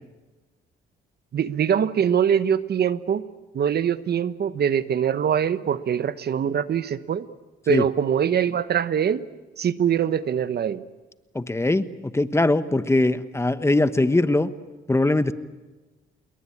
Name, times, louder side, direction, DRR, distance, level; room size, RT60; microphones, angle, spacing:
voice 1, 1.3-3.3 3.5-7.3 7.7-9.2 9.6-10.8, right 8 dB, 55° right, 14 dB, 1.1 m, -23 dB
voice 2, 11.3-14.5 14.9-15.3, left 2 dB, 15° left, 12 dB, 1.2 m, -21 dB
28.0 x 22.0 x 8.7 m, 1.2 s
cardioid pair, 90°, 20 cm